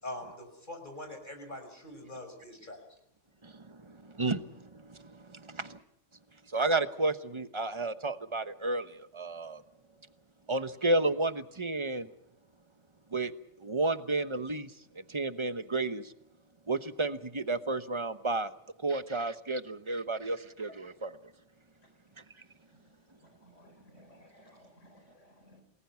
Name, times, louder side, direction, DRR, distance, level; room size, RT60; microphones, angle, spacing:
voice 1, 0.0-2.8, left 1 dB, 40° left, 5 dB, 5.9 m, -43 dB
voice 2, 5.5-5.8 6.5-8.9 9.1-9.6 10.5-12.1 13.1-13.3 13.6-14.7 15.1-16.0 16.7-18.5 18.8-21.1, right 2 dB, 25° right, 10 dB, 1.1 m, -31 dB
voice 3, 23.2-25.6, equal, 90° left, 6 dB, 4.5 m, -58 dB
28.5 x 20.0 x 5.9 m, 0.80 s
omnidirectional pair, 1.2 m